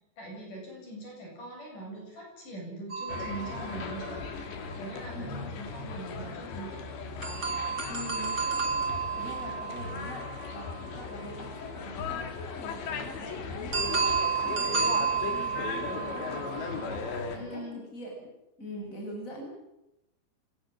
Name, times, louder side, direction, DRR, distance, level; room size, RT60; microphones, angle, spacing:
voice 1, 0.2-4.2 4.8-6.9 14.6-15.1 17.3-17.8, right 2 dB, 45° left, 0 dB, 9.1 m, -42 dB
sound 1, 2.9-4.6 7.2-11.1 13.7-17.2, right 5 dB, 30° right, 4.0 m, -32 dB
sound 2, 3.1-17.4, left 5 dB, 75° left, 5.0 m, -38 dB
voice 2, 5.1-5.5 7.9-8.4 9.2-14.1 14.4-18.3 18.6-19.6, equal, 15° left, 0 dB, 7.9 m, -43 dB
28.0 x 19.0 x 7.6 m, 0.89 s
omnidirectional pair, 5.0 m